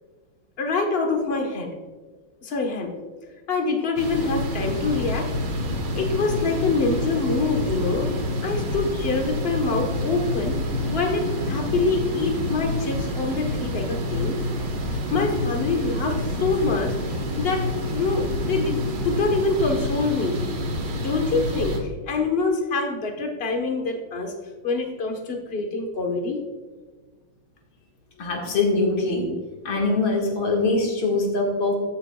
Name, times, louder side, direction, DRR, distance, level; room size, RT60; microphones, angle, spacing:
voice 1, 0.6-1.7 2.4-2.9 3.5-5.3 5.9-8.1 8.4-10.6 10.9-14.4 14.9-17.0 17.4-20.4 20.9-24.3 24.6-26.4, left 3 dB, 35° left, 3 dB, 1.2 m, -25 dB
sound 1, 4.0-21.8, left 1 dB, 65° right, 2.0 m, -28 dB
voice 2, 28.2-29.3 29.6-31.8, left 3 dB, 80° left, 0 dB, 2.5 m, -23 dB
14.0 x 8.3 x 2.4 m, 1.3 s
omnidirectional pair, 2.1 m